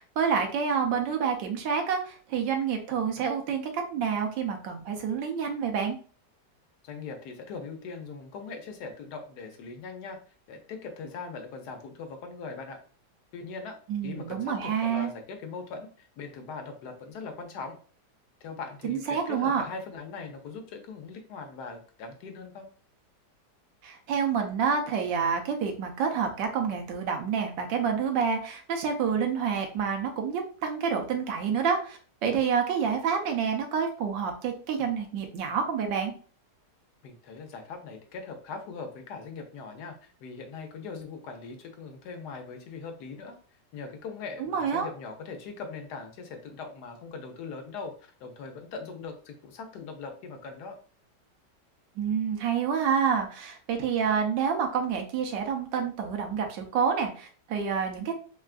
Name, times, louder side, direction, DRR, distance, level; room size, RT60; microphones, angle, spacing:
voice 1, 0.0-6.0 13.9-15.1 18.8-19.6 23.8-36.1 44.4-44.9 52.0-58.1, right 6 dB, 90° right, 4 dB, 1.3 m, -28 dB
voice 2, 6.8-10.2 10.5-12.8 13.3-13.8 14.0-17.8 18.4-22.7 37.0-43.3 43.7-50.8, left 4 dB, 75° left, 5 dB, 1.1 m, -40 dB
3.5 x 2.3 x 2.4 m, 0.40 s
omnidirectional pair, 1.9 m